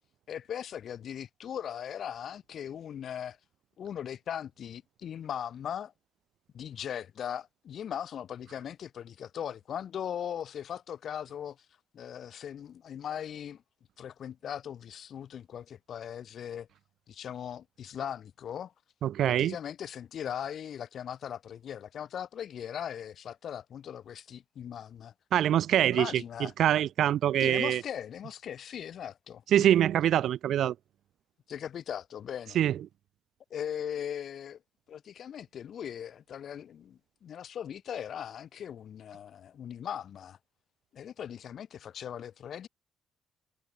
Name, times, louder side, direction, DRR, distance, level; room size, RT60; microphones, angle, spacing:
voice 1, 0.3-3.4 3.8-5.9 6.5-11.6 11.9-13.6 14.0-16.7 17.1-18.7 19.2-25.1 25.8-26.5 27.4-29.7 31.5-32.6 33.5-34.6 34.9-40.4 40.9-42.7, left 9 dB, 60° left, 6.4 m, -39 dB
voice 2, 19.0-19.6 25.3-26.2 26.6-27.8 29.5-30.7 32.5-32.8, right 11 dB, 75° right, 1.0 m, -24 dB
cardioid pair, 90°, 0 cm